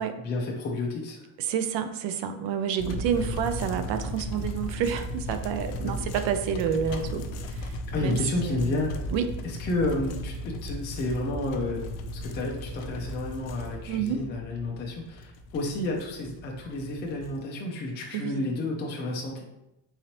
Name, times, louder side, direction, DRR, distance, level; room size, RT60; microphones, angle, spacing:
voice 1, 0.2-1.3 3.2-3.3 5.8-6.1 6.9-7.0 7.9-9.0 9.4-11.8 12.2-19.4, left 2 dB, 25° left, -1 dB, 0.4 m, -31 dB
voice 2, 1.4-8.7 9.1-9.3 13.9-14.2 18.1-18.5, right 8 dB, 65° right, 9 dB, 0.5 m, -29 dB
sound 1, 2.8-17.4, equal, 65° left, 0.6 m, -36 dB
3.8 x 3.0 x 2.9 m, 0.88 s
cardioid pair, 130°, 48 cm